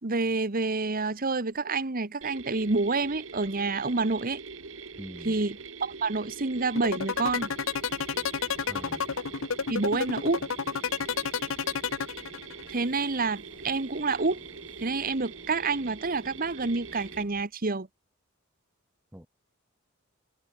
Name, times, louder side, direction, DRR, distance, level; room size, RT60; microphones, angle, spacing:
voice 1, 0.0-4.4 5.2-7.5 9.7-10.5 12.7-14.4 14.8-17.9, right 3 dB, 45° right, 1.3 m, -28 dB
Mechanisms, 2.2-17.2, right 5 dB, 70° right, 1.8 m, -44 dB
voice 2, 5.0-5.4 8.7-9.0 19.1-19.3, equal, 10° right, 7.5 m, -43 dB
sound 1, 6.8-12.7, left 6 dB, 75° left, 0.8 m, -30 dB
sound 2, 7.1-17.5, left 1 dB, 25° left, 4.0 m, -54 dB
head